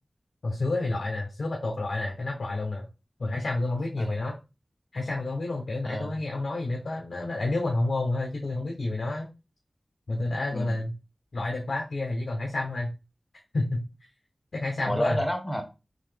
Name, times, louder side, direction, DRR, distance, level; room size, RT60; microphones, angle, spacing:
voice 1, 0.4-2.9 3.2-4.4 4.9-9.3 10.1-10.9 11.3-12.9 13.5-13.8 14.5-15.2, left 2 dB, 90° left, 0 dB, 0.8 m, -29 dB
voice 2, 5.8-6.2 10.5-10.8 14.8-15.6, equal, 10° left, 4 dB, 1.0 m, -29 dB
3.9 x 2.9 x 3.3 m, 0.27 s
wide cardioid pair, 70°, 0 cm